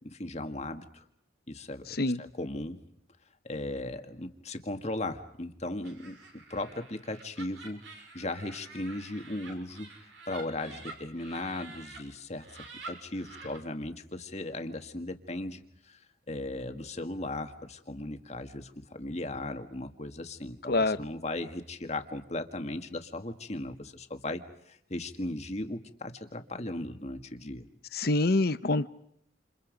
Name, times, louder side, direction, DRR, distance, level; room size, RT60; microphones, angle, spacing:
voice 1, 0.0-1.0 1.5-2.8 3.4-7.8 8.1-9.9 10.3-12.5 12.9-16.0 16.3-27.7, left 2 dB, 35° left, 7 dB, 1.9 m, -37 dB
voice 2, 1.9-2.2 20.7-21.0 27.9-28.9, left 2 dB, 55° left, 13 dB, 0.9 m, -26 dB
Laughter, 5.8-12.0 12.4-13.6, right 3 dB, 80° right, 6.6 m, -48 dB
29.0 x 28.5 x 5.3 m, 0.75 s
head